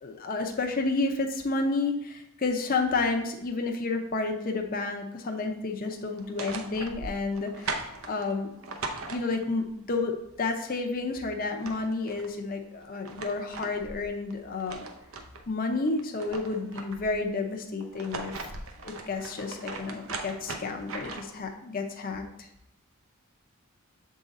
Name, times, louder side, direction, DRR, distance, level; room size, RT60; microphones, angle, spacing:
voice 1, 0.0-8.5 9.1-14.9 15.5-18.5 18.8-22.5, left 3 dB, 40° left, 3 dB, 0.6 m, -31 dB
sound 1, 6.1-9.7 11.1-11.2 11.4-12.3 12.8-15.5 15.9-17.2 17.8-21.4, right 3 dB, 70° right, 0.7 m, -39 dB
7.4 x 3.7 x 4.1 m, 0.83 s
head